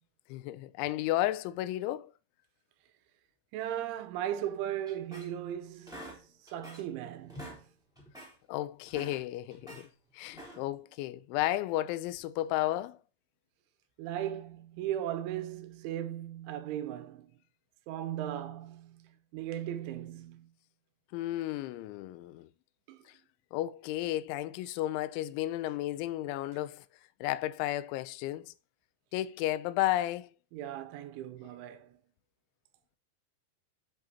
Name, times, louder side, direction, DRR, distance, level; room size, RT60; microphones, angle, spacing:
voice 1, 0.3-2.1 8.5-9.9 10.1-13.0 21.1-22.5 23.5-26.8 27.2-28.5 29.1-30.3, left 15 dB, 85° left, 2.9 m, -33 dB
voice 2, 3.5-7.6 10.5-10.6 14.0-17.3 17.9-20.5 22.9-23.1 30.5-32.0, right 11 dB, 80° right, 3.2 m, -37 dB
sound 1, 4.9-5.5 5.9-7.0 7.2-7.6 8.0-8.4 8.8-9.9 10.3-10.8, equal, ahead, 2.2 m, -47 dB
10.5 x 5.1 x 2.8 m
omnidirectional pair, 5.6 m